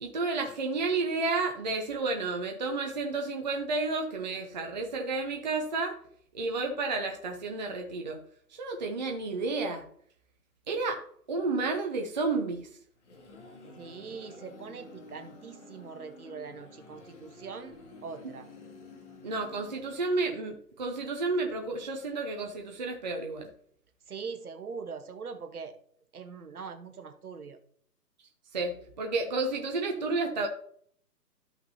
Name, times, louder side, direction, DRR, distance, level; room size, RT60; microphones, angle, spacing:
voice 1, 0.0-6.0 6.3-8.2 8.5-9.8 10.7-11.0 11.3-12.7 19.2-23.5 28.5-30.5, right 3 dB, 30° right, 2 dB, 0.6 m, -31 dB
sound 1, 12.7-20.4, left 3 dB, 45° left, 2.1 m, -50 dB
voice 2, 13.8-17.8 18.0-18.5 24.1-25.8 26.1-27.6, right 5 dB, 60° right, 7 dB, 1.2 m, -42 dB
13.0 x 5.8 x 2.7 m, 0.63 s
figure-of-eight pair, 145°, 49 cm